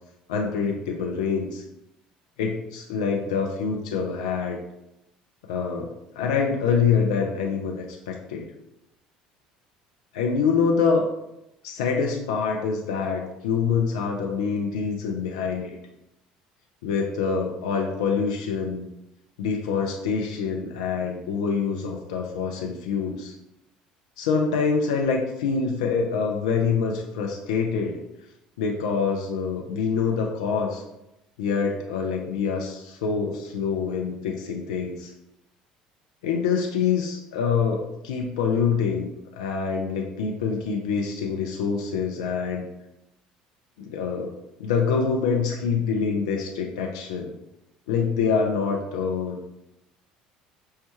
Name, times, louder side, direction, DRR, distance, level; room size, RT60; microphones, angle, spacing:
voice 1, 0.3-1.6 2.4-4.6 5.5-8.5 10.1-11.1 11.6-15.8 16.8-18.8 19.4-23.3 24.2-28.0 28.6-30.8 31.4-35.1 36.2-39.1 39.4-42.6 43.8-44.3 44.6-47.3 47.9-49.4, left 5 dB, 75° left, 1 dB, 0.4 m, -25 dB
5.5 x 2.2 x 3.0 m, 0.87 s
hypercardioid pair, 65°, 4 cm